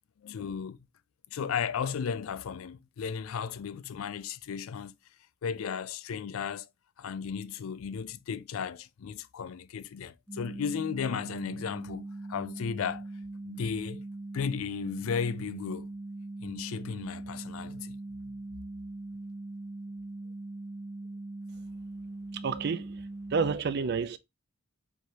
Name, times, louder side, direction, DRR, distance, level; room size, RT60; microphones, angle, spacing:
voice 1, 0.2-0.8 1.3-4.9 5.4-6.7 7.0-13.1 13.4-14.1 14.3-15.9 16.4-18.0 18.3-18.4, left 6 dB, 70° left, 0.4 m, -35 dB
sound 1, 10.3-23.6, right 2 dB, 5° right, 0.6 m, -41 dB
voice 2, 22.4-23.0 23.3-24.2, right 5 dB, 50° right, 0.4 m, -29 dB
4.7 x 3.1 x 2.7 m
head